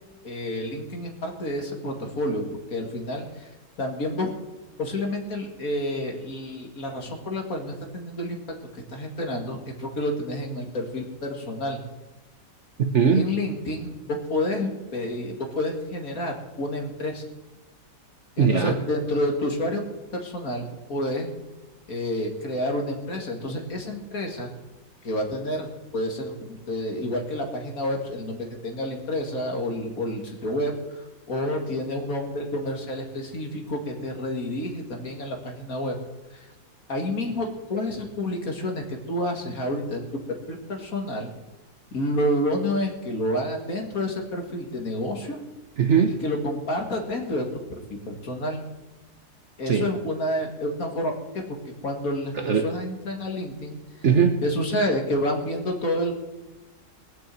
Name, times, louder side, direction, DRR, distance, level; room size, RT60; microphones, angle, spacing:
voice 1, 0.2-2.4 2.7-3.5 3.8-4.3 4.8-8.4 8.7-11.8 13.1-17.2 18.4-19.8 20.1-21.3 21.9-24.5 25.0-25.7 25.9-35.9 36.3-36.5 36.9-41.3 41.9-45.4 46.2-47.4 47.7-47.8 48.1-48.7 49.6-51.1 51.5-51.6 51.8-54.1 54.4-56.2, left 1 dB, 50° left, 2 dB, 2.6 m, -29 dB
voice 2, 12.8-13.3 18.4-18.7 45.8-46.1 49.7-49.8 52.3-52.7 54.0-54.4, right 6 dB, 50° right, 5 dB, 1.0 m, -20 dB
20.0 x 6.9 x 7.8 m, 1.2 s
omnidirectional pair, 1.9 m